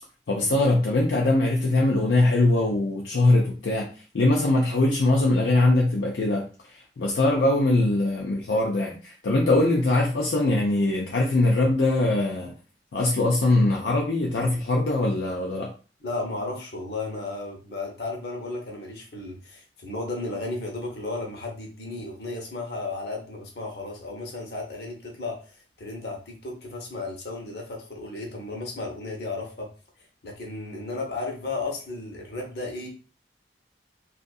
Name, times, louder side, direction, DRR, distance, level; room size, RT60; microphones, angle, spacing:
voice 1, 0.3-3.9 4.1-6.4 6.7-12.6 12.9-15.7, left 2 dB, 80° left, -1 dB, 0.5 m, -22 dB
voice 2, 16.0-29.7 30.2-32.9, left 2 dB, 65° left, 0 dB, 0.8 m, -34 dB
2.6 x 2.4 x 2.3 m, 0.35 s
head